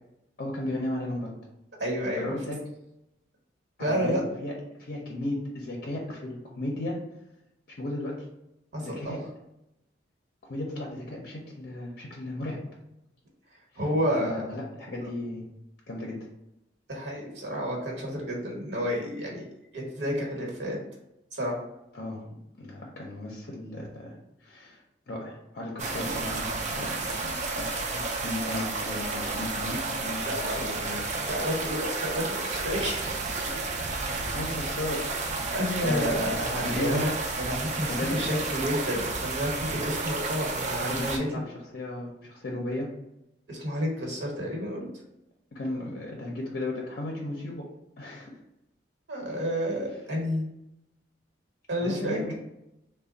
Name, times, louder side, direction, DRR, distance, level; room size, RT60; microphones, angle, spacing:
voice 1, 0.4-1.3 2.2-2.6 3.8-4.5 4.8-7.1 7.8-8.3 8.8-9.2 10.5-12.8 13.7-13.8 14.2-15.5 15.9-16.2 21.9-22.3 22.6-24.8 25.1-27.0 27.6-31.1 34.3-35.2 35.8-37.1 37.9-38.2 40.9-41.5 41.7-42.9 45.5-47.7 48.0-48.3 51.8-52.4, left 1 dB, 55° left, -2 dB, 0.5 m, -35 dB
voice 2, 1.8-2.3 3.8-4.2 8.7-9.2 13.8-14.5 16.9-19.4 19.7-20.8 21.3-21.6 30.2-31.0 31.3-33.4 34.1-34.3 35.5-37.1 37.4-41.4 43.5-44.9 49.1-50.5 51.7-52.2, equal, 70° right, -1 dB, 1.1 m, -30 dB
sound 1, 25.8-41.2, right 3 dB, 40° right, 0.4 m, -32 dB
3.3 x 2.1 x 3.9 m, 0.87 s
head